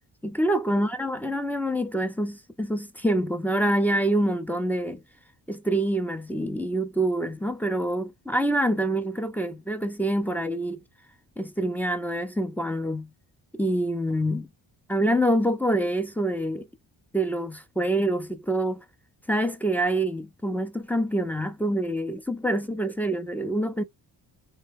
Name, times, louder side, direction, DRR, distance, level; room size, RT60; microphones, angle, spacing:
voice 1, 0.2-5.0 5.5-10.8 11.4-13.1 13.5-14.5 14.9-16.7 17.1-18.8 19.3-23.8, right 1 dB, 5° left, 0.4 m, -26 dB
3.2 x 2.2 x 3.3 m
cardioid pair, 110°, 47 cm